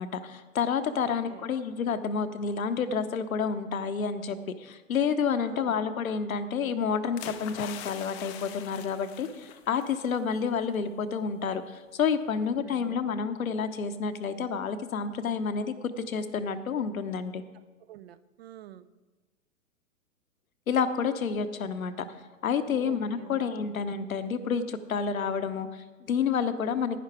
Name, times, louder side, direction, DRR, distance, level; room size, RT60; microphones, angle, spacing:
voice 1, 0.0-17.4 20.7-22.1 22.4-27.0, left 6 dB, 75° left, 10 dB, 0.9 m, -29 dB
voice 2, 0.9-1.5 5.4-5.7 12.3-13.0 17.8-18.9 22.7-23.4, right 11 dB, 45° right, 15 dB, 0.5 m, -48 dB
sound 1, 7.2-10.2 10.5-10.7, left 10 dB, 20° left, 0.5 m, -43 dB
11.0 x 9.6 x 4.7 m, 1.2 s
figure-of-eight pair, 110°, 42 cm